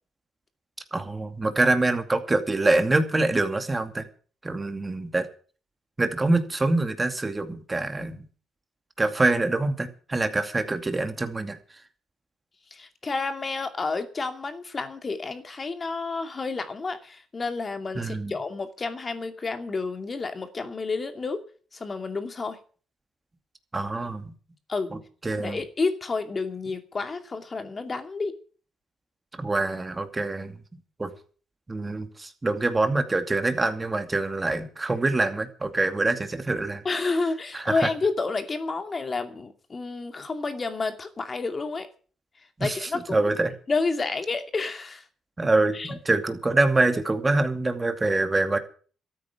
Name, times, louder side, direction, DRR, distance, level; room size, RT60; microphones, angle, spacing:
voice 1, 0.9-4.1 4.4-5.3 6.0-8.2 9.0-11.6 17.9-18.3 23.7-24.3 24.9-25.6 29.4-30.5 31.0-31.1 31.7-36.8 37.5-37.9 42.6-43.5 45.4-48.6, right 2 dB, 20° right, 8 dB, 2.4 m, -25 dB
voice 2, 12.7-21.4 21.7-22.6 24.7-24.9 25.4-28.4 36.8-41.9 42.6-43.3 43.7-45.0 45.7-46.0, left 3 dB, 35° left, 8 dB, 2.5 m, -30 dB
13.5 x 9.2 x 8.6 m, 0.41 s
cardioid pair, 90°, 0 cm